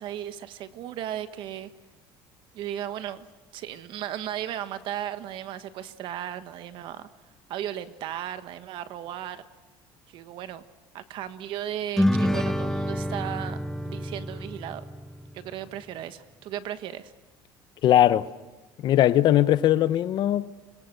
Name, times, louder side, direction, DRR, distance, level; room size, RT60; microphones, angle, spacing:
voice 1, 0.0-1.7 2.5-3.2 3.5-7.1 7.5-9.4 10.1-10.6 10.9-13.6 13.8-14.8 15.3-17.1, right 11 dB, 60° right, 1.4 m, -35 dB
sound 1, 12.0-15.6, left 1 dB, 5° left, 0.9 m, -28 dB
voice 2, 17.8-18.3 18.8-20.5, left 12 dB, 55° left, 0.8 m, -20 dB
25.5 x 22.0 x 6.8 m
cardioid pair, 130°, 9 cm